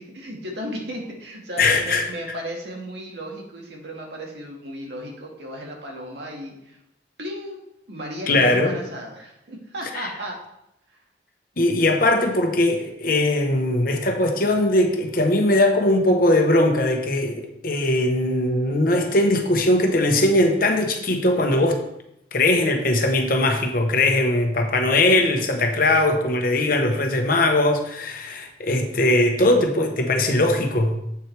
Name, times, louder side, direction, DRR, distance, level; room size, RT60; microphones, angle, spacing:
voice 1, 0.0-6.8 7.2-7.6 7.9-10.4, equal, 70° right, 0 dB, 1.9 m, -35 dB
voice 2, 1.6-2.0 8.3-8.8 11.6-21.8 22.3-30.9, left 1 dB, 50° left, 4 dB, 1.0 m, -20 dB
8.1 x 7.4 x 3.4 m, 0.82 s
head